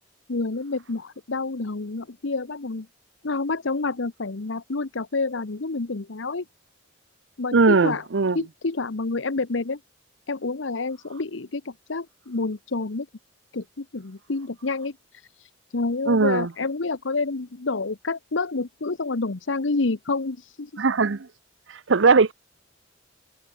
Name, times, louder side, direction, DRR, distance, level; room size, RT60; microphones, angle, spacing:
voice 1, 0.3-2.9 3.2-6.4 7.4-8.0 8.3-9.8 10.3-13.1 13.5-20.8, left 3 dB, 80° left, 1.0 m, -28 dB
voice 2, 7.5-8.4 16.1-16.5 20.8-21.3 21.9-22.3, right 4 dB, 75° right, 0.7 m, -19 dB
head